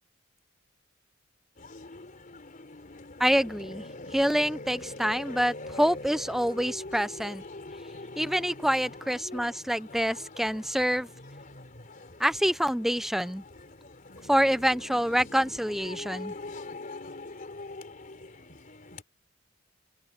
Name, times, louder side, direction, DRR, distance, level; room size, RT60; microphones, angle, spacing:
sound 1, 1.6-19.0, left 2 dB, 45° left, 3.6 m, -43 dB
voice 1, 3.2-3.9 4.1-7.4 8.2-11.1 12.2-13.4 14.3-16.3, equal, ahead, 0.7 m, -26 dB
open air
head